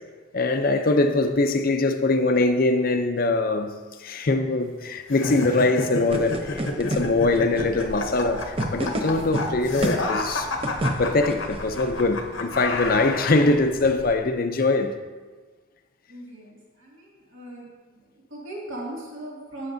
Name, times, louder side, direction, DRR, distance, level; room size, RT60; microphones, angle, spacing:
voice 1, 0.3-3.7 4.0-10.5 11.0-15.0, left 2 dB, 45° left, 0.5 m, -22 dB
sound 1, 5.1-13.5, left 3 dB, 70° left, 0.8 m, -31 dB
sound 2, 6.1-14.1, right 1 dB, 25° right, 0.7 m, -33 dB
voice 2, 16.1-17.7 18.3-19.7, right 1 dB, 70° right, 2.2 m, -38 dB
14.5 x 5.9 x 2.6 m
head